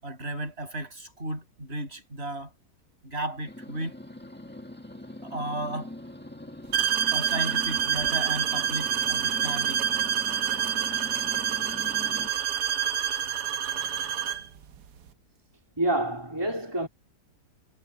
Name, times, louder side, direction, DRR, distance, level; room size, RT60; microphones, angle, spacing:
voice 1, 0.0-2.5 3.0-4.0 5.2-5.9 7.1-9.8, right 1 dB, 35° right, 7.9 m, -34 dB
sound 1, 3.4-12.3, left 1 dB, 5° left, 1.9 m, -42 dB
sound 2, 6.7-14.5, right 9 dB, 80° right, 1.5 m, -27 dB
voice 2, 15.8-16.9, right 1 dB, 15° right, 3.3 m, -27 dB
omnidirectional pair, 1.8 m